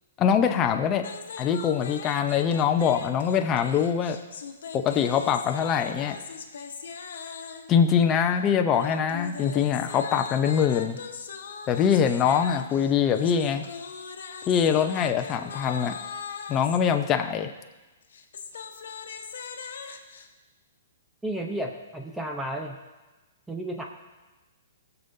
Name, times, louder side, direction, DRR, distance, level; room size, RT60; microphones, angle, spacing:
voice 1, 0.2-1.1 1.4-4.2 4.7-6.2 7.7-11.0 11.7-13.7 14.5-16.0 16.5-17.5, left 7 dB, 25° left, 5 dB, 0.7 m, -23 dB
sound 1, 1.0-7.8 8.7-16.8 18.0-20.3, left 6 dB, 75° left, 1.1 m, -40 dB
voice 2, 21.2-22.8 23.5-23.8, right 1 dB, 5° right, 2 dB, 0.8 m, -32 dB
18.5 x 7.0 x 2.7 m, 1.2 s
hypercardioid pair, 130°, 0 cm